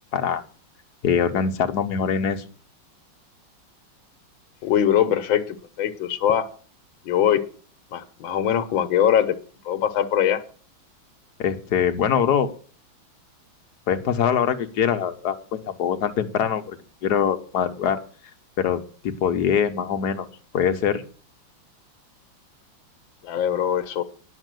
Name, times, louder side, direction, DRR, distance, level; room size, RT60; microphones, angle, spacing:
voice 1, 0.1-0.4 1.0-2.5 11.4-12.5 13.9-15.4 15.7-16.8 17.0-18.0 18.6-20.3 20.5-21.0, left 8 dB, 55° left, 7 dB, 1.5 m, -23 dB
voice 2, 4.6-6.5 7.1-7.4 7.9-9.4 9.7-10.4 23.2-24.0, left 10 dB, 75° left, 9 dB, 1.9 m, -22 dB
10.5 x 7.8 x 7.7 m, 0.40 s
omnidirectional pair, 2.2 m